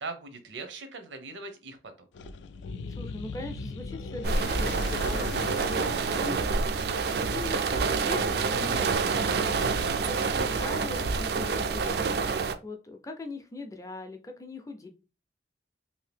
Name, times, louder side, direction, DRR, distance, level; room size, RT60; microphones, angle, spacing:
voice 1, 0.0-2.1, right 3 dB, 85° right, 7 dB, 0.7 m, -40 dB
sound 1, 2.1-11.7, left 3 dB, 80° left, 0.3 m, -39 dB
voice 2, 2.9-9.6 9.9-12.1 12.6-14.9, left 2 dB, 20° left, 4 dB, 0.5 m, -41 dB
sound 2, 4.2-12.6, right 5 dB, 60° right, 0.3 m, -28 dB
2.7 x 2.7 x 3.3 m, 0.32 s
head